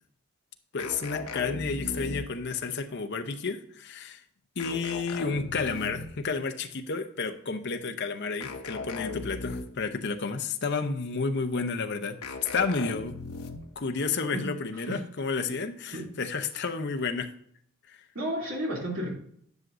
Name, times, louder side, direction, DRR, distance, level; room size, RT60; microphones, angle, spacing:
voice 1, 0.7-4.2 4.6-13.1 13.8-17.3 17.9-18.0, left 4 dB, 50° left, 7 dB, 0.7 m, -31 dB
sound 1, 0.8-2.6 4.6-6.3 8.4-9.9 12.2-13.8, left 3 dB, 90° left, 0.9 m, -38 dB
voice 2, 18.1-19.1, equal, 60° right, -2 dB, 2.7 m, -32 dB
10.5 x 6.1 x 2.6 m, 0.65 s
head